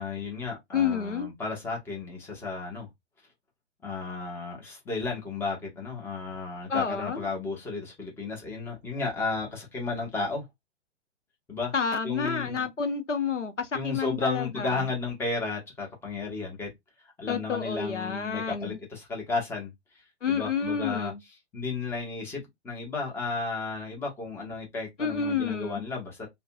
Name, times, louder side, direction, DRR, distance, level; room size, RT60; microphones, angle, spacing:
voice 1, 0.0-2.9 3.8-10.4 11.5-11.7 12.0-12.7 13.7-16.7 17.2-19.7 20.3-21.1 21.5-26.3, left 4 dB, 5° left, 0.7 m, -33 dB
voice 2, 0.7-1.3 6.7-7.2 11.7-14.8 17.3-18.8 20.2-21.2 25.0-25.8, left 6 dB, 80° left, 0.8 m, -29 dB
2.6 x 2.2 x 2.6 m
figure-of-eight pair, 115°, 36 cm